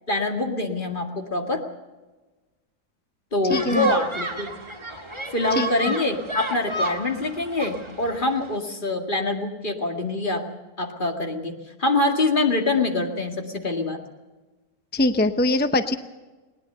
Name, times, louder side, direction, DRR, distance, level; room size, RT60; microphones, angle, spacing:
voice 1, 0.1-1.6 3.3-4.5 4.9-5.0 5.3-10.4 10.8-11.5 11.8-14.0, left 2 dB, 35° left, 4 dB, 2.2 m, -25 dB
voice 2, 3.5-3.9 5.5-5.9 14.9-15.9, left 2 dB, 15° left, 9 dB, 0.4 m, -23 dB
sound 1, 3.5-8.6, right 2 dB, 20° right, 1.9 m, -32 dB
20.0 x 19.0 x 6.8 m, 1.2 s
omnidirectional pair, 1.6 m